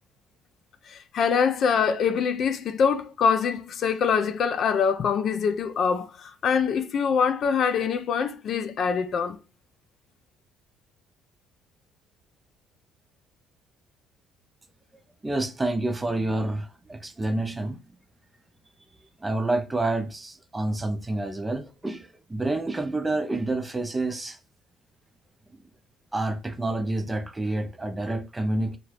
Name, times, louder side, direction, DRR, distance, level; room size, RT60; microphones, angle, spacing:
voice 1, 0.9-9.4, left 6 dB, 55° left, 0.4 m, -24 dB
voice 2, 15.2-17.8 19.2-24.4 26.1-28.8, right 2 dB, 15° right, 0.5 m, -28 dB
2.8 x 2.4 x 3.2 m
supercardioid pair, 85°, 0 cm